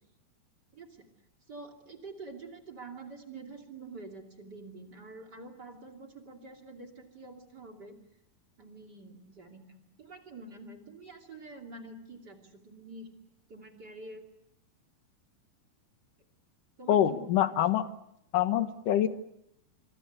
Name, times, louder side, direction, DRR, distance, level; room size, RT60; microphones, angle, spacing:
voice 1, 0.7-1.1 1.5-8.0 8.6-13.1 13.5-14.2 16.8-17.6, right 3 dB, 30° right, 3 dB, 2.8 m, -47 dB
voice 2, 16.9-17.9 18.3-19.1, left 11 dB, 65° left, 10 dB, 2.6 m, -25 dB
25.5 x 24.0 x 8.1 m, 0.80 s
omnidirectional pair, 4.4 m